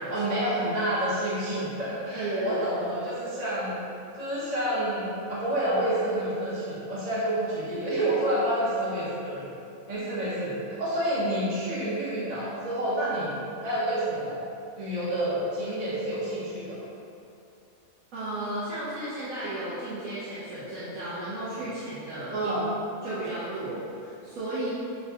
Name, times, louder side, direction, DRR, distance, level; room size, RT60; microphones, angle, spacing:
voice 1, 0.1-3.8 4.1-9.5 9.9-13.3 13.6-14.4 14.8-16.8 22.3-22.7, right 1 dB, 35° right, -9 dB, 0.7 m, -29 dB
voice 2, 2.1-2.6 18.1-22.5 23.0-24.7, right 1 dB, 65° right, -11 dB, 1.1 m, -33 dB
6.5 x 2.2 x 2.8 m, 2.6 s
omnidirectional pair, 1.6 m